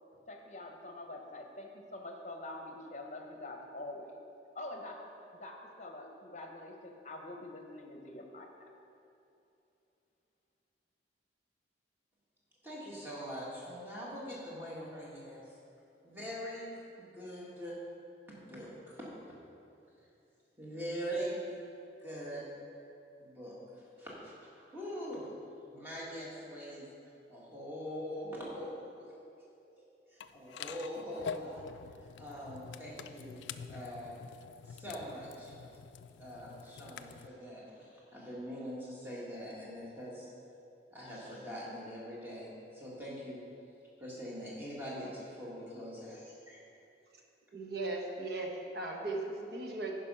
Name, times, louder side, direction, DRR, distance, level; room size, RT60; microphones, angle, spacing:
voice 1, 0.3-4.2 4.5-5.0 5.4-8.7, left 2 dB, 40° left, 3 dB, 0.9 m, -45 dB
voice 2, 12.6-15.6 16.0-17.8 18.3-19.1 20.6-21.4 22.0-22.4 23.2-25.3 25.7-26.9 27.3-28.7 29.0-29.1 30.1-31.6 32.2-33.4 33.7-34.1 34.6-35.6 36.2-40.3 40.9-43.4 44.0-46.6, equal, 10° right, -6 dB, 1.8 m, -43 dB
sound 1, 30.2-37.3, left 6 dB, 80° left, 0.3 m, -46 dB
voice 3, 47.5-49.9, right 2 dB, 60° right, 0 dB, 1.1 m, -37 dB
10.0 x 5.2 x 5.5 m, 2.7 s
head